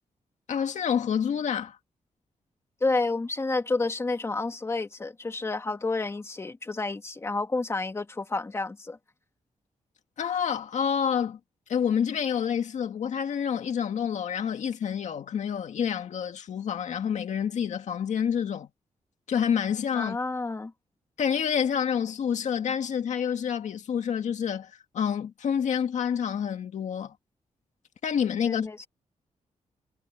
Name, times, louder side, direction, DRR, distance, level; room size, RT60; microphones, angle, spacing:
voice 1, 0.5-1.8 10.2-11.4 11.7-18.7 19.3-20.2 21.2-27.1 28.0-28.9, left 8 dB, 70° left, 2.0 m, -28 dB
voice 2, 2.8-9.0 19.9-20.7 28.4-28.9, left 3 dB, 20° left, 2.4 m, -30 dB
wide cardioid pair, 160°, 13 cm